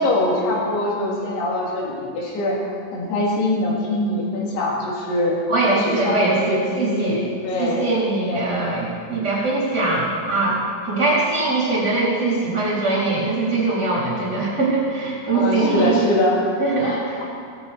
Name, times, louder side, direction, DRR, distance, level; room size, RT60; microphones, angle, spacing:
voice 1, 0.0-5.4 5.7-8.5 15.3-16.4 16.8-17.2, left 1 dB, 65° left, -3 dB, 4.6 m, -23 dB
voice 2, 5.5-7.3 7.6-10.6 10.8-16.1 16.6-17.2, right 3 dB, 25° right, -6 dB, 3.6 m, -22 dB
18.0 x 14.5 x 4.3 m, 2.2 s
omnidirectional pair, 5.2 m